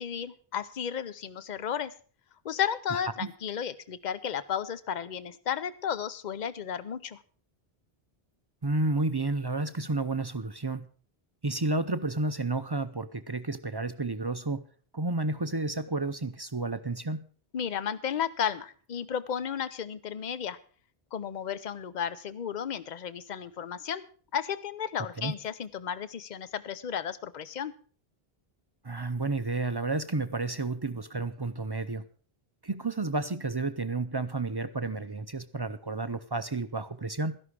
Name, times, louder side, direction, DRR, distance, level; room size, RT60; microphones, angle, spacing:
voice 1, 0.0-1.9 2.4-7.2 17.5-20.6 21.1-24.1 24.3-27.7, left 8 dB, 50° left, 15 dB, 0.8 m, -33 dB
voice 2, 2.9-3.3 8.6-10.9 11.4-14.6 14.9-17.3 25.2-25.3 28.8-32.0 32.6-37.4, right 2 dB, 30° right, 12 dB, 0.5 m, -31 dB
13.0 x 11.0 x 4.8 m, 0.42 s
omnidirectional pair, 1.0 m